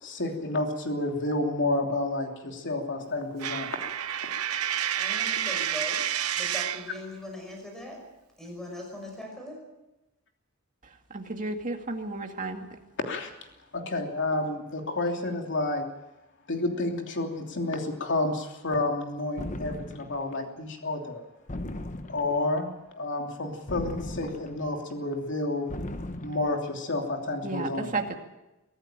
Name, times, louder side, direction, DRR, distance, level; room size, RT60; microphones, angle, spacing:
voice 1, 0.0-3.7 13.0-13.3 13.7-15.9 16.5-21.2 22.1-22.7 23.0-25.7 26.2-27.9, left 2 dB, 55° left, 3 dB, 3.1 m, -30 dB
Coin (dropping), 3.4-6.9, right 10 dB, 80° right, 0.9 m, -29 dB
voice 2, 5.0-6.1 6.3-8.0 8.4-9.6, left 1 dB, ahead, 1 dB, 5.9 m, -40 dB
voice 3, 11.1-12.7 27.4-28.1, right 3 dB, 35° right, 4 dB, 2.3 m, -32 dB
sound 1, 19.4-20.2 21.5-22.5 23.7-24.7 25.7-26.6, left 1 dB, 35° left, 1.2 m, -37 dB
23.5 x 14.5 x 9.0 m, 0.99 s
head